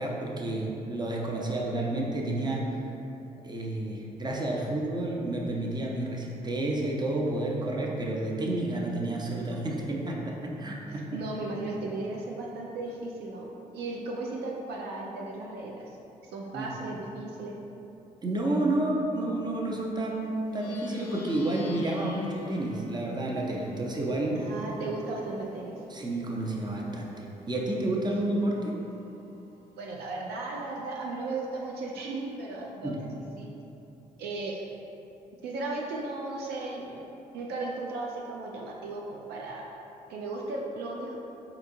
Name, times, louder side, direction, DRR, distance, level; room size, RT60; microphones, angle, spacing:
voice 1, 0.0-2.7 3.4-11.2 16.5-16.7 18.2-24.4 25.9-27.1 27.5-28.7 32.8-33.0, right 1 dB, 25° right, -2 dB, 0.7 m, -30 dB
voice 2, 10.9-15.9 16.3-17.5 24.3-25.8 29.8-32.9 33.4-33.5 34.2-34.7 35.4-37.0 37.3-39.7 40.1-41.2, right 2 dB, 70° right, -2 dB, 0.4 m, -36 dB
Plucked string instrument, 20.4-30.1, equal, 85° left, 0.4 m, -49 dB
4.3 x 2.9 x 2.6 m, 2.9 s
hypercardioid pair, 45°, 17 cm